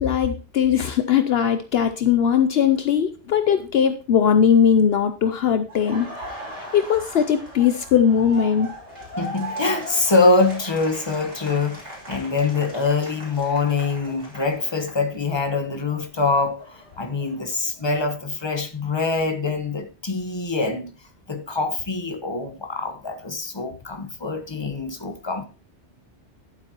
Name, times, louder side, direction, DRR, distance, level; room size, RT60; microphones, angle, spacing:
voice 1, 0.0-6.1 6.7-8.7, left 8 dB, 65° left, 0.8 m, -19 dB
Laughter, 5.7-15.5 15.8-17.9, right 1 dB, 85° right, 3.4 m, -38 dB
voice 2, 9.2-20.9 21.3-25.5, left 3 dB, 25° left, 1.2 m, -24 dB
11.5 x 8.0 x 2.9 m
omnidirectional pair, 1.2 m